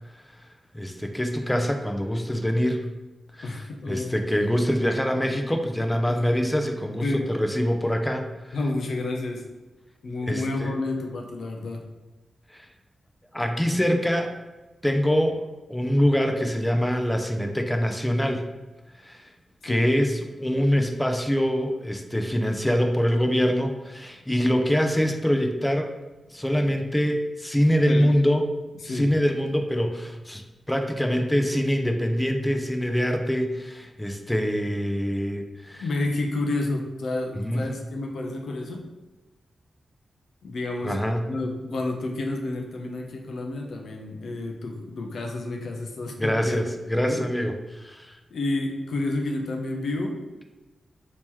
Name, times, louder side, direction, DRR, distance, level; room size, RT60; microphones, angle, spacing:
voice 1, 0.7-2.9 3.3-3.6 3.9-8.6 10.3-10.8 12.5-12.7 13.3-14.4 14.8-15.4 15.7-18.4 19.0-19.3 19.6-26.0 26.3-28.4 28.8-35.8 37.4-37.6 40.8-41.3 46.2-48.2, equal, 10° left, 4 dB, 0.5 m, -24 dB
voice 2, 3.4-4.1 6.1-6.2 7.0-7.3 8.5-9.4 10.0-11.8 19.6-19.9 27.9-28.1 28.8-29.1 35.8-38.9 40.4-41.0 41.3-46.6 47.0-47.2 48.3-50.5, left 2 dB, 75° left, 2 dB, 0.5 m, -30 dB
2.9 x 2.9 x 3.6 m, 1.1 s
cardioid pair, 55°, 0 cm